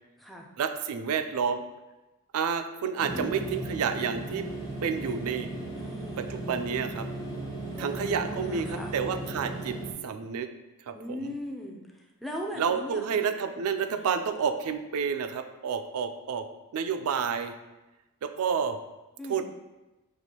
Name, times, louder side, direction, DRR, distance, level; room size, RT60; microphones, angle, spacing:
voice 1, 0.6-1.6 2.3-4.5 4.8-5.5 6.2-7.1 7.8-9.8 10.0-10.5 10.9-11.0 11.2-11.3 12.6-16.5 16.7-17.5 18.2-18.8 19.3-19.4, right 6 dB, 75° right, 8 dB, 0.4 m, -29 dB
sound 1, 3.0-9.9, right 2 dB, 15° left, 0.8 m, -36 dB
voice 2, 3.1-3.5 5.7-6.3 7.7-8.9 10.9-13.3 13.9-14.1 19.2-19.4, equal, ahead, 0 dB, 0.4 m, -39 dB
6.1 x 2.5 x 2.8 m, 1.1 s
head